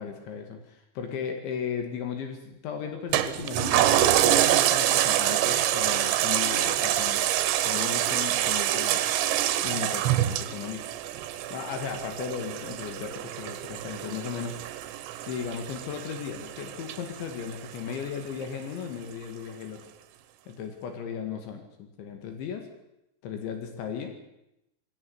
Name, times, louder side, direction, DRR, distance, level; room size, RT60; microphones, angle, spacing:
voice 1, 0.0-7.2 7.6-9.1 9.6-10.9 11.5-14.6 15.3-19.8 20.5-22.7 23.2-24.1, left 7 dB, 75° left, 5 dB, 4.4 m, -36 dB
Toilet flush, 3.1-17.9 18.4-18.5, right 12 dB, 75° right, 3.3 m, -26 dB
21.0 x 17.0 x 9.6 m, 0.87 s
omnidirectional pair, 5.3 m